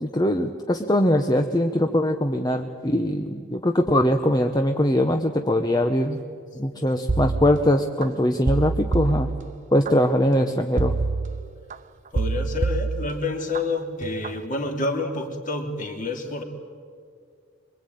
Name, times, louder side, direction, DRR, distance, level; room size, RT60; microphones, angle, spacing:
voice 1, 0.0-6.2 6.6-9.3 9.7-10.9, left 1 dB, 20° left, 5 dB, 0.9 m, -22 dB
sound 1, 7.1-8.1 8.5-9.9 10.8-11.7 12.1-13.6 14.0-14.4, right 3 dB, 35° right, 0.6 m, -26 dB
voice 2, 12.1-16.4, left 2 dB, 40° left, 3 dB, 2.8 m, -28 dB
25.0 x 23.0 x 9.3 m, 2.2 s
head